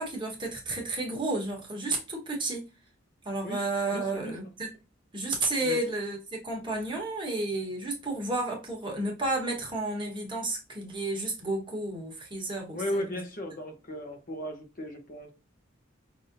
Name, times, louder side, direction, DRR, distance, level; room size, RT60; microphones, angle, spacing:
voice 1, 0.0-2.7 3.2-4.7 5.1-13.2, right 2 dB, 25° right, 1.3 m, -32 dB
voice 2, 3.9-4.3 5.6-5.8 12.7-15.3, equal, 45° left, 0.9 m, -35 dB
5.5 x 2.7 x 2.6 m
head